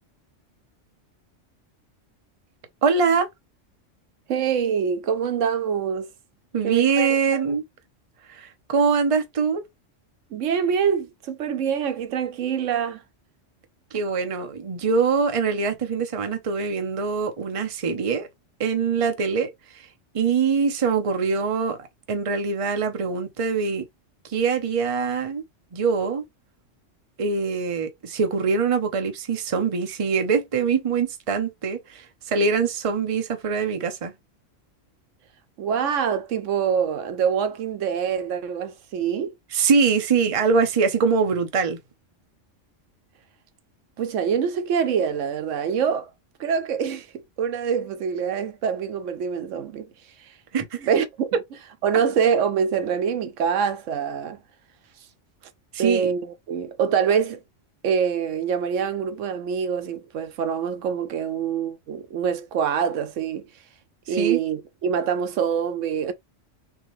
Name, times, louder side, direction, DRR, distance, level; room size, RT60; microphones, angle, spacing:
voice 1, 2.8-3.3 6.5-7.6 8.3-9.6 13.9-18.3 18.6-19.9 20.1-23.8 24.3-25.4 25.7-26.2 27.2-34.1 39.5-41.8 50.5-50.8 55.7-56.1 64.1-64.4, right 5 dB, 35° right, 0.7 m, -23 dB
voice 2, 4.3-6.1 6.6-7.4 10.3-13.0 35.6-39.3 44.0-46.1 46.4-49.9 50.2-50.3 50.8-51.4 51.8-54.4 55.8-57.4 57.8-63.5 64.1-66.1, right 7 dB, 80° right, 1.0 m, -25 dB
3.9 x 3.0 x 3.1 m
omnidirectional pair, 1.3 m